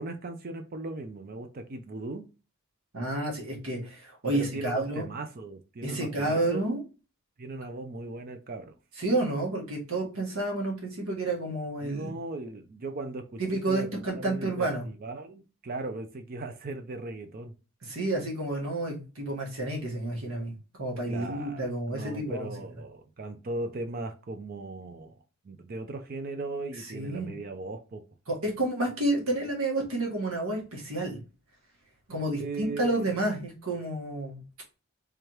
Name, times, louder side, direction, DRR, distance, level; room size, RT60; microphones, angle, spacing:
voice 1, 0.0-2.3 4.3-6.7 7.4-8.7 11.8-13.4 13.7-17.5 21.1-25.1 25.4-28.0 32.3-32.9, right 2 dB, 40° right, 0.4 m, -38 dB
voice 2, 2.9-5.1 5.8-6.8 9.0-12.1 13.4-14.8 17.8-22.5 26.9-27.3 28.3-31.2 32.1-34.4, right 2 dB, 75° right, 1.5 m, -30 dB
3.5 x 3.3 x 2.9 m
head